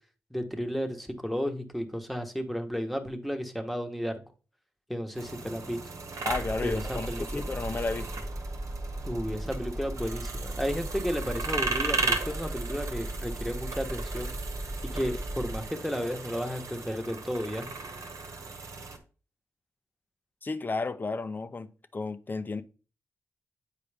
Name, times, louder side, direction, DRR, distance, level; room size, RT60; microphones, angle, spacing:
voice 1, 0.3-4.2 4.9-5.8 6.6-7.4 9.0-14.3 14.8-17.7, equal, ahead, 1.3 m, -33 dB
sound 1, 5.1-19.0, right 4 dB, 65° right, 1.3 m, -36 dB
voice 2, 6.2-8.3 20.4-22.6, left 3 dB, 35° left, 0.7 m, -33 dB
sound 2, 6.3-15.6, right 1 dB, 15° right, 1.5 m, -37 dB
8.4 x 4.6 x 3.5 m
cardioid pair, 65°, 6 cm